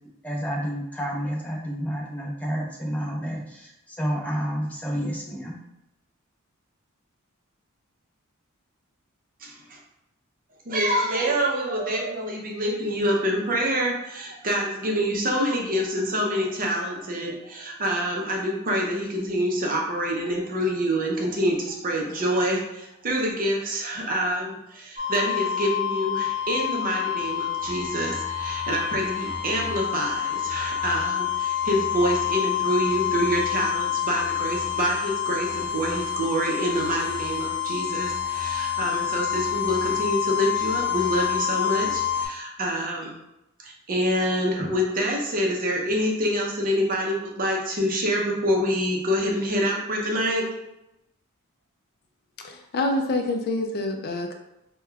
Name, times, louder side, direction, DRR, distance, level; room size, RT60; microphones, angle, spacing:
voice 1, 0.2-5.6, equal, 5° left, -3 dB, 0.6 m, -30 dB
voice 2, 9.4-9.8 10.7-43.2 43.6-50.5, equal, 40° right, -1 dB, 0.6 m, -26 dB
sound 1, 25.0-42.3, left 9 dB, 25° right, 1.0 m, -28 dB
voice 3, 52.4-54.3, left 2 dB, 45° left, 4 dB, 0.3 m, -26 dB
4.8 x 2.2 x 2.3 m, 0.89 s
head